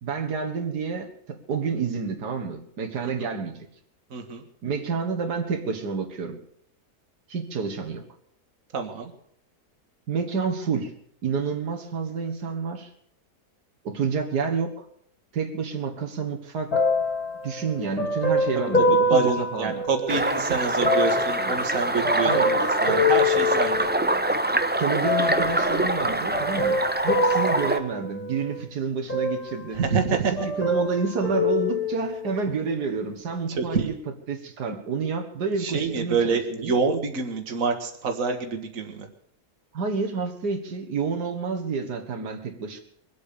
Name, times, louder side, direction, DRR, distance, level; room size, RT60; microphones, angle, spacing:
voice 1, 0.0-3.6 4.6-6.4 7.3-8.1 10.1-10.9 11.2-12.9 13.8-14.8 15.3-16.8 17.4-19.8 22.2-22.5 24.8-29.9 30.1-34.0 34.3-36.7 39.7-42.8, right 5 dB, 90° right, 3 dB, 2.1 m, -29 dB
voice 2, 4.1-4.4 8.7-9.1 18.8-18.9 19.1-23.9 29.7-30.3 33.5-33.9 35.6-39.1, right 4 dB, 55° right, 5 dB, 2.0 m, -26 dB
sound 1, 16.7-20.3 20.8-24.3 25.0-25.7 26.3-28.6 29.1-30.1 30.4-32.4 33.1-33.2, left 2 dB, 70° left, 4.0 m, -26 dB
sound 2, 20.1-27.8, right 2 dB, 15° right, 0.4 m, -25 dB
22.5 x 8.5 x 6.8 m, 0.67 s
omnidirectional pair, 1.7 m